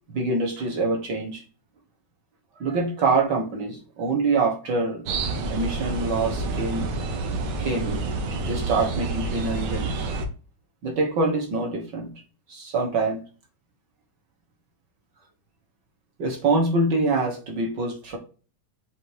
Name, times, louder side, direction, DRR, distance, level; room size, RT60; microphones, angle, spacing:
voice 1, 0.1-1.4 2.6-5.1 5.5-6.9 7.6-10.1 10.8-12.1 12.5-13.2 16.2-18.2, right 3 dB, 60° right, 1.2 m, -25 dB
sound 1, 5.1-10.3, right 3 dB, 75° right, 2.3 m, -28 dB
7.7 x 2.8 x 4.8 m
omnidirectional pair, 3.6 m